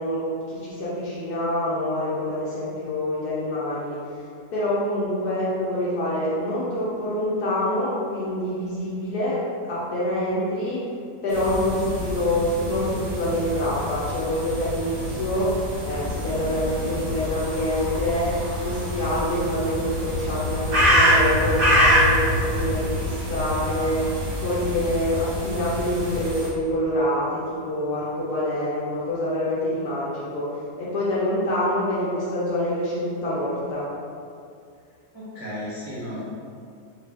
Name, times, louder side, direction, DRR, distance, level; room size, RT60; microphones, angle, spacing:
voice 1, 0.0-4.3 4.5-10.8 11.2-33.9, left 1 dB, 70° left, -9 dB, 1.2 m, -26 dB
sound 1, 11.3-26.5, equal, 45° right, 0.8 m, -25 dB
voice 2, 35.1-36.2, equal, 15° left, -10 dB, 1.2 m, -34 dB
4.0 x 2.4 x 3.3 m, 2.3 s
omnidirectional pair, 1.8 m